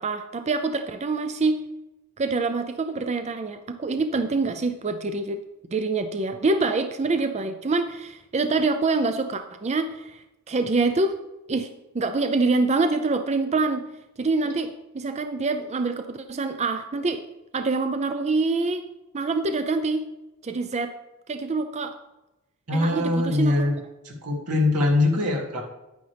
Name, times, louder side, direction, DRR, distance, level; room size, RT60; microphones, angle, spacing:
voice 1, 0.0-1.6 2.2-5.4 5.7-11.1 11.5-11.7 11.9-13.8 14.2-17.2 17.5-18.8 19.1-20.1 20.4-20.9 21.3-21.9 22.7-23.7, right 3 dB, 30° right, 8 dB, 0.5 m, -25 dB
voice 2, 22.7-23.8 24.0-25.6, left 2 dB, 90° right, -2 dB, 2.4 m, -22 dB
9.9 x 9.4 x 3.4 m, 0.97 s
head